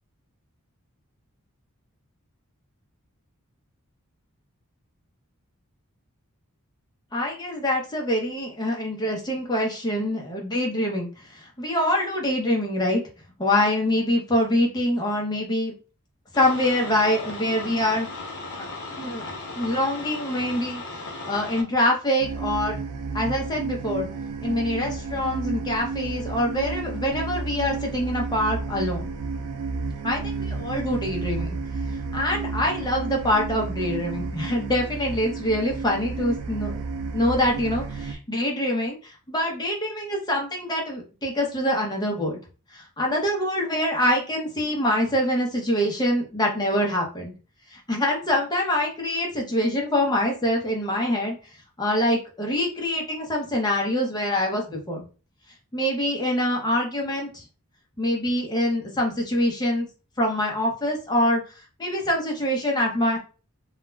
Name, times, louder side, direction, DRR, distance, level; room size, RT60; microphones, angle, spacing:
voice 1, 7.1-13.0 13.4-15.7 16.3-18.1 18.6-18.7 18.9-19.2 19.6-20.8 21.2-22.8 23.1-24.1 24.4-29.1 30.0-31.6 32.1-36.8 37.1-42.4 42.7-47.3 47.7-51.3 51.8-55.0 55.7-57.4 58.0-59.9 60.2-61.4 61.8-63.2, left 1 dB, 20° left, 0 dB, 0.6 m, -25 dB
sound 1, 16.3-21.6, left 3 dB, 50° left, 0.7 m, -36 dB
sound 2, 22.2-38.1, right 4 dB, 75° right, 0.4 m, -32 dB
2.3 x 2.1 x 3.2 m, 0.34 s
head